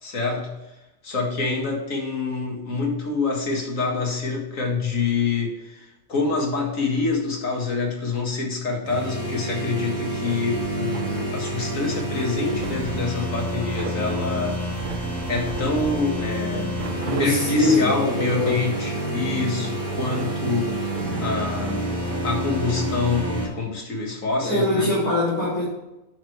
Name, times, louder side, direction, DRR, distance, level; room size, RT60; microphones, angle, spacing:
voice 1, 0.0-0.6 1.0-14.6 15.3-16.8 17.2-21.9 22.2-24.9, left 4 dB, 65° left, 0 dB, 2.1 m, -26 dB
sound 1, 8.9-23.5, right 1 dB, 80° right, 2.9 m, -29 dB
sound 2, 9.7-22.9, right 6 dB, 55° right, 0.5 m, -38 dB
voice 2, 17.0-18.7 24.4-25.6, left 2 dB, 15° left, -8 dB, 2.6 m, -22 dB
9.3 x 6.4 x 3.3 m, 0.99 s
omnidirectional pair, 1.5 m